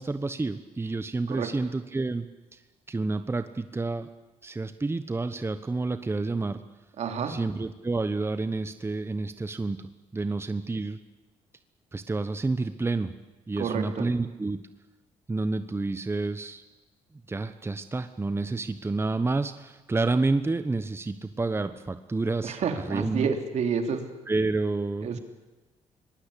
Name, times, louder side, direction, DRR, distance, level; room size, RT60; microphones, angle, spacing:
voice 1, 0.0-2.3 2.5-2.6 2.9-4.1 4.4-6.6 7.3-9.8 10.1-11.0 11.9-13.1 13.5-14.6 15.3-16.6 17.3-22.6 22.9-23.3 24.3-25.2, right 3 dB, 20° right, 10 dB, 1.1 m, -29 dB
voice 2, 7.0-7.4 13.6-14.1 22.4-24.1 25.0-25.2, right 6 dB, 65° right, 6 dB, 3.1 m, -29 dB
24.5 x 19.5 x 8.6 m, 1.1 s
cardioid pair, 80°, 12 cm